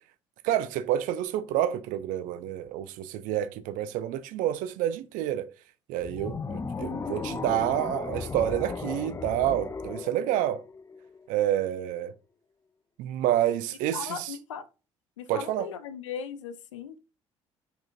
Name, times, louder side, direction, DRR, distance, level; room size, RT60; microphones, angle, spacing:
voice 1, 0.4-5.5 5.9-10.6 11.3-12.1 13.0-14.3 15.3-15.7, right 12 dB, 60° right, 0.6 m, -28 dB
sound 1, 6.0-11.3, left 4 dB, 20° left, 0.5 m, -36 dB
voice 2, 13.7-14.6 15.2-17.0, left 7 dB, 80° left, 0.5 m, -38 dB
5.0 x 4.1 x 2.4 m
figure-of-eight pair, 55°, 16 cm